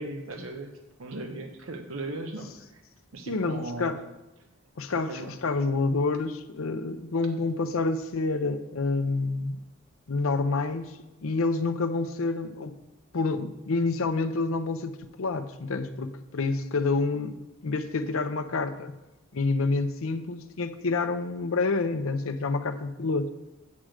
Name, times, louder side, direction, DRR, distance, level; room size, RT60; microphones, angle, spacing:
voice 1, 0.0-2.8 3.1-4.0 5.1-5.4, right 2 dB, 85° right, 4 dB, 0.9 m, -38 dB
voice 2, 3.3-4.0 4.8-9.6 10.1-12.8 13.1-18.9 19.3-23.3, left 3 dB, 90° left, 9 dB, 0.7 m, -28 dB
8.5 x 4.9 x 7.6 m, 1.0 s
head